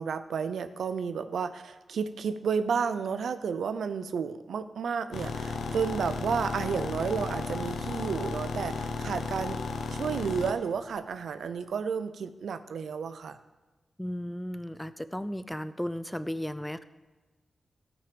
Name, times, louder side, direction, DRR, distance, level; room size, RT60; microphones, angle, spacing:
voice 1, 0.0-9.6 9.9-13.4, right 6 dB, 90° right, 10 dB, 0.6 m, -32 dB
sound 1, 5.1-10.5, left 4 dB, 90° left, 0.8 m, -35 dB
sound 2, 5.3-11.6, left 3 dB, 65° left, 1.4 m, -43 dB
voice 2, 14.0-16.8, equal, 5° left, 13 dB, 0.5 m, -35 dB
16.5 x 6.2 x 5.1 m, 1.2 s
wide cardioid pair, 115°, 0 cm